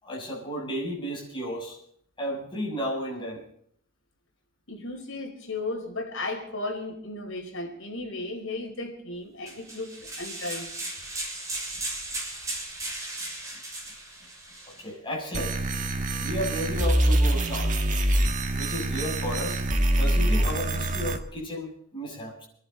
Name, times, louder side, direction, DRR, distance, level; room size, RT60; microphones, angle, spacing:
voice 1, 0.0-1.8 2.2-3.4 14.7-15.6 16.2-17.7 18.6-19.6 20.0-22.5, equal, 25° left, -2 dB, 7.1 m, -33 dB
voice 2, 4.7-10.9, left 2 dB, 70° left, 3 dB, 4.8 m, -35 dB
sound 1, 9.5-14.8, right 2 dB, 15° right, 6.7 m, -36 dB
sound 2, 15.3-21.2, right 1 dB, 40° right, 1.7 m, -25 dB
27.5 x 11.5 x 3.9 m, 0.68 s
head